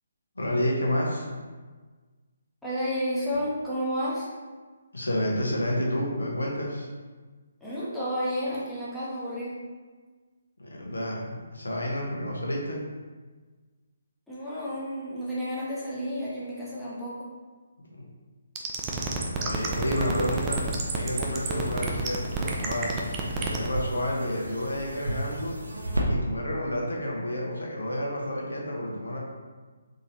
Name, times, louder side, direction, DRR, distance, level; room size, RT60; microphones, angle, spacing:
voice 1, 0.4-1.3 4.9-6.9 10.6-12.8 19.4-20.6 20.9-22.9 23.3-25.6 26.1-29.2, left 1 dB, 70° left, -2 dB, 0.9 m, -30 dB
voice 2, 2.6-4.3 7.6-9.6 14.3-17.3, equal, ahead, -10 dB, 0.8 m, -31 dB
sound 1, 18.6-23.7, right 5 dB, 15° right, 0.4 m, -29 dB
sound 2, 19.5-26.1, right 1 dB, 75° right, 0.6 m, -36 dB
3.7 x 2.7 x 3.0 m, 1.4 s
figure-of-eight pair, 140°, 0 cm